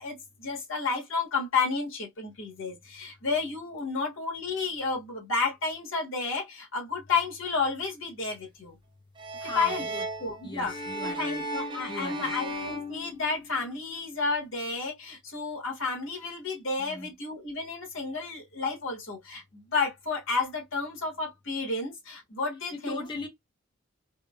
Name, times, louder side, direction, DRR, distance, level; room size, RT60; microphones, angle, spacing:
voice 1, 0.0-8.8 9.4-9.8 10.2-10.7 11.0-23.1, left 4 dB, 70° left, 1.4 m, -31 dB
sound 1, 9.2-13.8, right 1 dB, 25° right, 0.7 m, -36 dB
voice 2, 9.4-10.0 10.4-11.4 11.9-12.3 16.8-17.1 22.7-23.3, left 2 dB, 25° left, 1.1 m, -39 dB
3.5 x 2.1 x 2.3 m
head